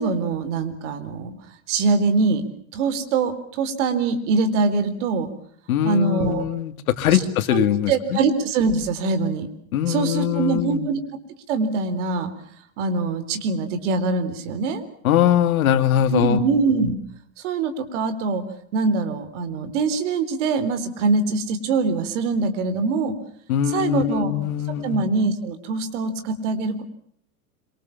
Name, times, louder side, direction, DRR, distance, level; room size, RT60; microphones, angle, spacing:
voice 1, 0.0-1.3 1.7-2.4 2.7-5.3 5.8-6.4 7.1-7.2 7.5-9.5 9.9-11.0 11.5-12.3 12.8-14.8 16.1-17.0 17.4-18.4 18.7-23.2 23.7-24.3 24.8-26.8, right 4 dB, 55° right, 10 dB, 4.1 m, -23 dB
voice 2, 5.7-8.2 9.7-10.9 15.0-16.4 23.5-25.0, left 10 dB, 80° left, 9 dB, 2.6 m, -21 dB
26.5 x 24.5 x 7.2 m, 0.64 s
supercardioid pair, 170°, 42 cm